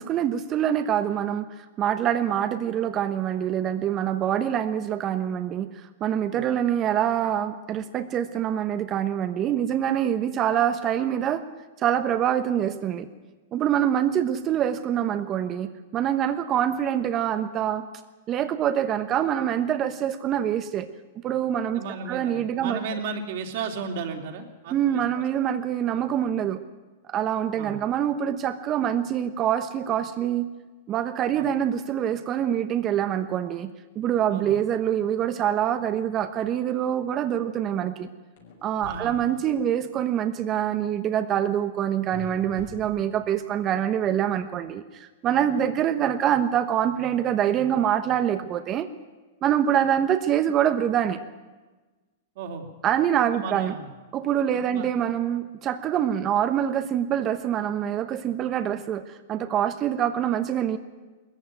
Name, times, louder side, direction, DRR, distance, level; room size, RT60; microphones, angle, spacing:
voice 1, 0.0-11.4 11.8-13.1 13.5-17.9 18.3-20.9 21.2-22.8 24.7-26.6 27.1-30.5 30.9-33.7 33.9-38.1 38.6-48.9 49.4-51.2 52.8-53.7 54.1-60.8, right 10 dB, 30° right, 9 dB, 1.0 m, -25 dB
voice 2, 21.7-25.0 27.6-27.8 31.3-31.4 34.3-34.5 38.8-39.1 45.5-45.6 52.3-52.7 53.3-53.9 54.7-54.9, right 5 dB, 60° right, 4 dB, 3.1 m, -34 dB
sound 1, 38.4-39.0 42.1-43.3, left 5 dB, 75° left, 5.6 m, -43 dB
20.0 x 14.5 x 9.1 m, 1.3 s
hypercardioid pair, 125°, 0 cm